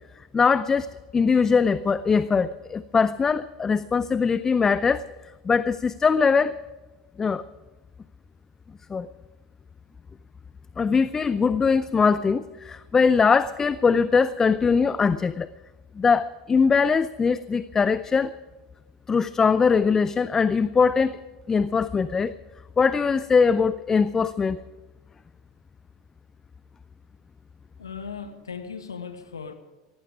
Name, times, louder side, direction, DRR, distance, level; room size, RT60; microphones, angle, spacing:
voice 1, 0.3-0.9 1.1-5.0 5.5-6.6 7.2-7.4 8.9-9.1 10.8-15.5 16.0-18.3 19.1-21.2 21.5-22.3 22.8-24.6, left 5 dB, 20° left, 16 dB, 0.5 m, -21 dB
voice 2, 27.8-29.5, left 6 dB, 90° left, 9 dB, 1.5 m, -37 dB
18.0 x 15.0 x 5.0 m, 1.2 s
hypercardioid pair, 85°, 2 cm